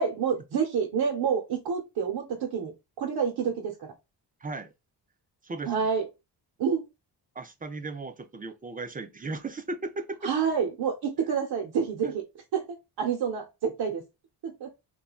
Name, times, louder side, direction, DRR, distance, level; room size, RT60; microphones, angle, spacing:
voice 1, 0.0-2.7 3.0-3.9 5.7-6.1 6.6-6.8 10.2-12.3 12.5-12.6 13.0-14.0 14.4-14.7, right 6 dB, 70° right, 0.7 m, -28 dB
voice 2, 4.4-4.7 5.4-5.7 7.4-10.3 12.0-12.1, right 3 dB, 20° right, 0.3 m, -36 dB
3.0 x 2.2 x 2.3 m
cardioid pair, 75°, 42 cm